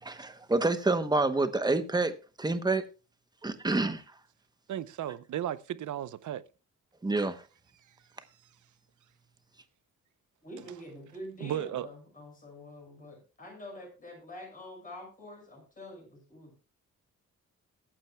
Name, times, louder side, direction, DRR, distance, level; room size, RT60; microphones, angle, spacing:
voice 1, 0.0-2.1 2.4-2.8 3.4-4.0 7.0-7.4, right 2 dB, 15° right, 0.9 m, -28 dB
voice 2, 4.7-6.4 11.4-11.9, right 11 dB, 85° right, 0.7 m, -34 dB
voice 3, 10.4-16.6, left 1 dB, 30° left, 6.2 m, -46 dB
22.0 x 8.7 x 2.3 m
wide cardioid pair, 165°, 29 cm